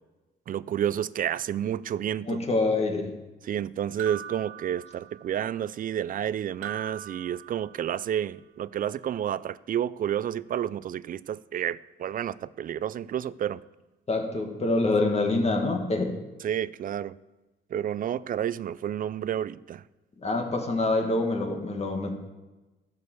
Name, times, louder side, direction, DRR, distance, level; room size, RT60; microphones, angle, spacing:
voice 1, 0.5-2.4 3.4-13.6 16.4-17.1 17.7-19.8, right 10 dB, 45° right, 0.4 m, -30 dB
voice 2, 2.3-3.1 14.1-16.2 20.2-22.1, left 2 dB, 30° left, 1.9 m, -26 dB
sound 1, 4.0-5.5 6.6-8.1, right 9 dB, 80° right, 0.7 m, -41 dB
12.5 x 5.3 x 7.9 m
cardioid pair, 90°, 20 cm